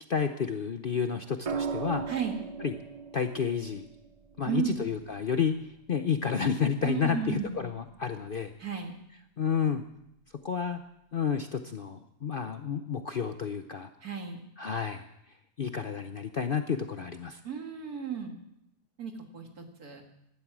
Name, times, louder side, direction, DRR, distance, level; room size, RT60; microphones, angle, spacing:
voice 1, 0.1-2.1 2.6-2.7 3.1-3.9 4.4-5.5 5.9-8.5 9.4-9.8 10.4-10.8 11.1-13.9 14.6-15.1 15.6-17.4, left 6 dB, 45° left, 7 dB, 0.8 m, -30 dB
sound 1, 1.5-5.6 7.3-7.7, right 5 dB, 55° right, 0.4 m, -38 dB
voice 2, 2.1-2.4 4.4-4.8 6.8-7.6 8.6-8.9 14.0-14.4 17.4-18.3 19.0-20.0, right 7 dB, 85° right, 3 dB, 2.6 m, -34 dB
16.5 x 12.0 x 6.1 m, 0.79 s
omnidirectional pair, 1.5 m